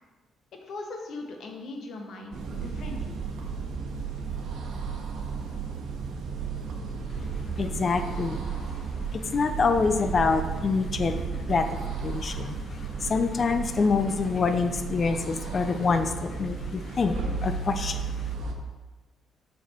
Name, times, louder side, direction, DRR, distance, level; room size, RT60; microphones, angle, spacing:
voice 1, 0.6-3.2, left 2 dB, 65° left, 3 dB, 1.2 m, -39 dB
sound 1, 2.3-18.5, right 5 dB, 75° right, 1.0 m, -34 dB
voice 2, 7.6-8.4 9.1-11.2 11.5-12.6 13.0-18.0, left 4 dB, 40° left, 8 dB, 0.5 m, -26 dB
6.9 x 4.2 x 4.4 m, 1.2 s
cardioid pair, 90°, 0 cm